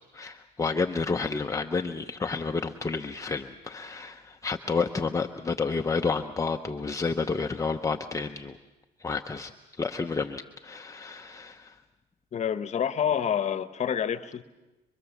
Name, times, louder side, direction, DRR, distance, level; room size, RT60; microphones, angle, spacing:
voice 1, 0.1-8.6 9.0-9.5 9.8-11.8, left 4 dB, 20° left, 5 dB, 0.8 m, -30 dB
voice 2, 12.3-14.4, left 8 dB, 40° left, 12 dB, 1.1 m, -28 dB
25.0 x 23.5 x 7.2 m, 1.1 s
cardioid pair, 110°, 17 cm